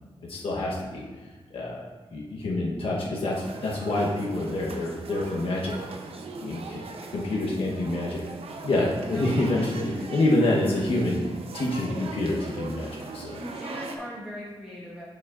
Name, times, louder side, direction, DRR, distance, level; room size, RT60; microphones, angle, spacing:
voice 1, 0.2-1.0 1.5-1.9 2.1-5.8 6.4-6.8 7.1-8.2 8.6-11.2 11.5-13.4, left 2 dB, 70° left, -3 dB, 1.0 m, -27 dB
sound 1, 3.3-14.0, right 3 dB, 75° right, 0.6 m, -40 dB
voice 2, 13.4-15.0, equal, 5° right, -8 dB, 1.2 m, -39 dB
7.2 x 6.9 x 2.4 m, 1.3 s
wide cardioid pair, 160°, 10 cm